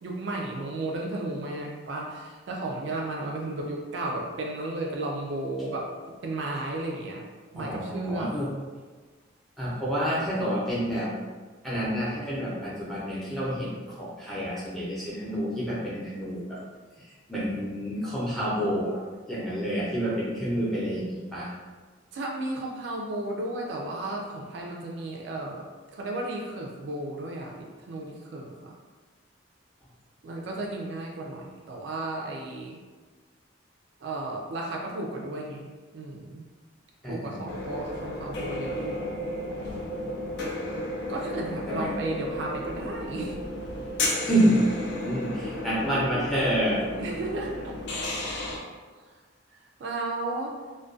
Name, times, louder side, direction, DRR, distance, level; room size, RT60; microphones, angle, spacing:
voice 1, 0.0-5.9 6.2-7.2 7.5-8.4 22.1-25.6 25.9-28.7 30.2-32.8 34.0-35.7 35.9-36.4 37.1-39.0 41.1-43.4 47.0-47.8 48.2-48.5 49.5-50.6, right 2 dB, 60° right, -1 dB, 0.3 m, -34 dB
voice 2, 7.5-8.5 9.6-11.1 11.6-13.7 14.0-16.6 17.3-19.0 19.3-21.5 37.0-37.4 41.7-41.9 44.2-46.8, equal, ahead, -8 dB, 0.5 m, -28 dB
sound 1, 37.5-48.6, left 1 dB, 60° left, 0.4 m, -33 dB
2.3 x 2.1 x 2.5 m, 1.4 s
head